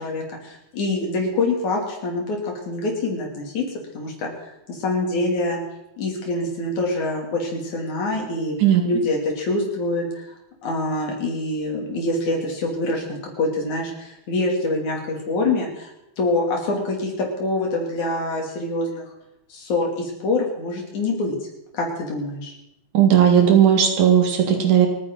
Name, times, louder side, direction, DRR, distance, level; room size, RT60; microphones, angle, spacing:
voice 1, 0.0-3.7 3.9-5.6 6.0-8.6 8.8-10.3 10.6-15.9 16.2-19.0 19.5-21.4 21.7-22.5, left 2 dB, 75° left, 0 dB, 4.3 m, -25 dB
voice 2, 22.9-24.9, right 9 dB, 75° right, 3 dB, 3.3 m, -16 dB
28.5 x 9.9 x 4.0 m, 0.87 s
omnidirectional pair, 3.4 m